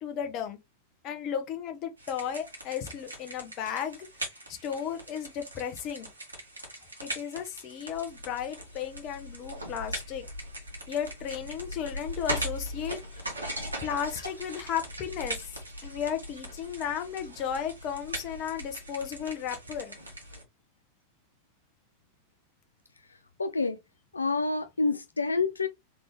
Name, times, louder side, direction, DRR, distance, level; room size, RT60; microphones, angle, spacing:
voice 1, 0.0-0.6 1.0-4.1 4.5-6.1 7.0-10.2 10.9-13.2 13.8-15.5 15.8-19.9, left 8 dB, 35° left, 1.1 m, -34 dB
sound 1, 2.0-20.4, right 1 dB, 80° right, 1.7 m, -40 dB
voice 2, 23.4-23.8 24.1-25.7, left 3 dB, 80° left, 0.4 m, -27 dB
3.8 x 3.5 x 3.1 m
figure-of-eight pair, 90°, 0 cm